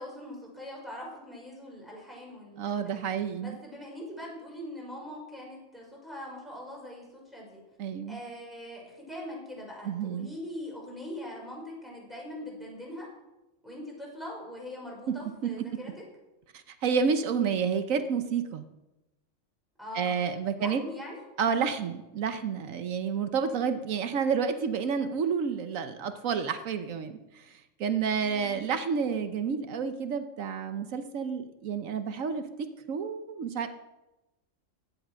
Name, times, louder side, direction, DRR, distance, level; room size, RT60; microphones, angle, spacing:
voice 1, 0.0-3.0 3.4-7.6 8.1-13.1 13.6-15.9 19.8-20.2 20.6-21.2 28.2-28.6, left 1 dB, ahead, -3 dB, 5.7 m, -42 dB
voice 2, 2.6-3.6 7.8-8.2 9.8-10.3 15.1-15.2 15.4-15.5 16.5-18.6 19.9-20.8 21.4-33.7, right 6 dB, 85° right, 9 dB, 1.3 m, -30 dB
16.0 x 11.5 x 6.2 m, 1.0 s
omnidirectional pair, 1.3 m